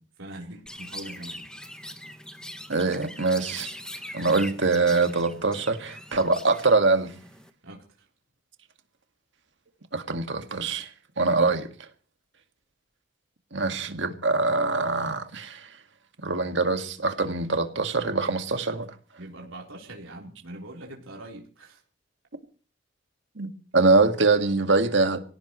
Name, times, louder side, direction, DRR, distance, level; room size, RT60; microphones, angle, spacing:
voice 1, 0.2-1.5 7.6-8.1 19.2-21.8, right 1 dB, 90° right, 3.8 m, -42 dB
Chirp tweet, 0.7-7.5, left 1 dB, 5° left, 1.3 m, -42 dB
voice 2, 2.7-3.7 4.1-7.1 9.9-10.9 11.2-11.7 13.5-15.7 16.2-18.9 23.4-25.2, right 3 dB, 65° right, 1.9 m, -24 dB
26.0 x 17.5 x 3.1 m
head